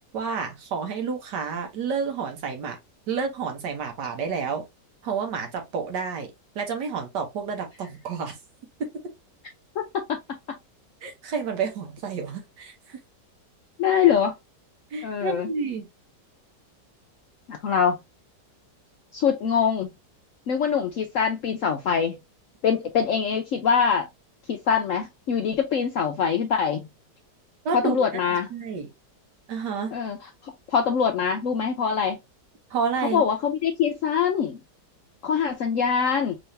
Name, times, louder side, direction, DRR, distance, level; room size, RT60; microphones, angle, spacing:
voice 1, 0.1-2.8 3.1-4.6 5.0-6.3 6.5-8.4 11.0-13.0 14.9-15.9 27.6-28.0 28.5-28.9 29.5-29.9 32.7-33.2, right 5 dB, 70° right, 1.6 m, -29 dB
voice 2, 9.8-10.2 13.8-14.3 15.0-15.5 17.5-18.0 19.1-19.9 20.5-22.2 22.6-24.1 24.5-26.9 27.7-28.5 29.9-30.2 30.4-32.2 33.1-34.6 35.2-36.4, left 7 dB, 70° left, 0.8 m, -23 dB
3.8 x 3.4 x 2.7 m
omnidirectional pair, 1.9 m